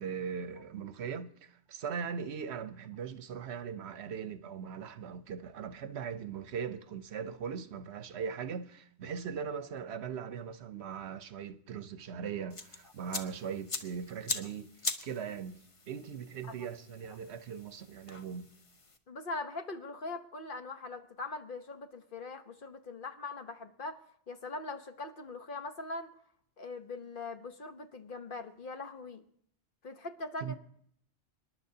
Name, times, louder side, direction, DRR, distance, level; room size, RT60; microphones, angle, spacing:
voice 1, 0.0-14.7 15.0-15.6 15.9-18.5 30.4-30.5, right 7 dB, 75° right, 1.0 m, -40 dB
sound 1, 12.5-19.0, left 3 dB, 30° left, 0.9 m, -42 dB
voice 2, 19.1-24.0 24.3-26.1 26.6-29.2 29.8-30.5, left 3 dB, 50° left, 1.1 m, -41 dB
26.0 x 11.0 x 2.8 m
omnidirectional pair, 1.1 m